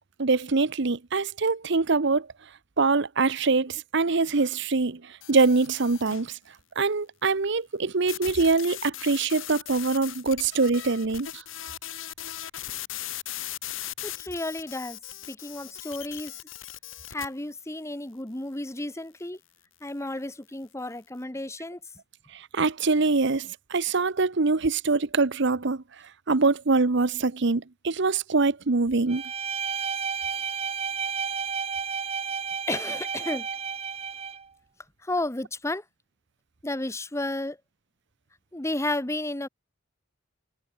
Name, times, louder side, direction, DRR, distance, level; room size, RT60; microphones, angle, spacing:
voice 1, 0.2-2.3 2.8-5.0 5.3-6.3 6.8-11.4 22.5-25.8 26.3-29.2, right 3 dB, 60° right, 0.9 m, -24 dB
sound 1, 5.2-6.3 8.1-17.3, left 12 dB, 75° left, 2.2 m, -38 dB
voice 2, 14.0-15.0 15.3-16.3 17.1-19.4 19.8-21.8 32.7-33.5 35.0-35.8 36.6-37.6 38.5-39.5, left 2 dB, 15° left, 1.2 m, -32 dB
Bowed string instrument, 29.1-34.5, right 6 dB, 30° right, 1.1 m, -31 dB
head